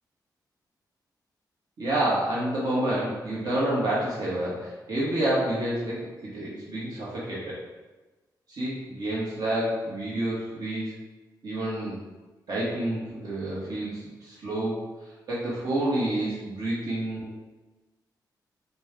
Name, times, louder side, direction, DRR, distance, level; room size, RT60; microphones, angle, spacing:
voice 1, 1.8-7.6 8.5-11.0 11.4-12.0 12.5-14.9 15.3-17.4, right 1 dB, 60° right, -7 dB, 1.2 m, -29 dB
4.3 x 2.2 x 3.3 m, 1.2 s
wide cardioid pair, 150°, 8 cm